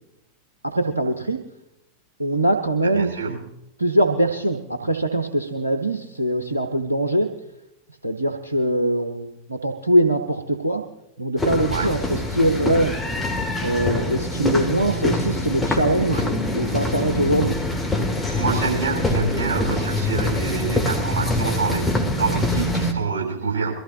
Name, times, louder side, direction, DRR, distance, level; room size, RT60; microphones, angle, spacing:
voice 1, 0.6-1.4 2.2-3.5 3.8-7.3 8.0-10.8 11.2-12.9 13.6-17.6 22.2-22.3, right 1 dB, 85° right, 5 dB, 0.8 m, -22 dB
voice 2, 2.9-3.3 11.7-11.9 16.1-16.2 16.6-16.8 18.4-23.7, right 5 dB, 60° right, -1 dB, 7.3 m, -26 dB
sound 1, 11.4-22.9, left 2 dB, 10° left, 2.1 m, -24 dB
23.0 x 15.0 x 2.8 m, 0.84 s
figure-of-eight pair, 90°, 0 cm